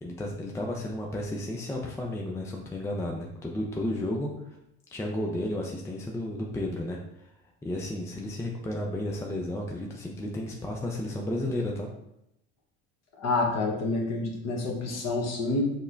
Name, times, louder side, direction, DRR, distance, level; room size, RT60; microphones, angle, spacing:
voice 1, 0.0-4.3 4.9-7.3 7.6-11.9, left 1 dB, 10° left, 0 dB, 0.5 m, -32 dB
voice 2, 13.2-15.7, left 3 dB, 45° left, 1 dB, 1.0 m, -28 dB
5.3 x 2.2 x 2.5 m, 0.81 s
hypercardioid pair, 70°, 37 cm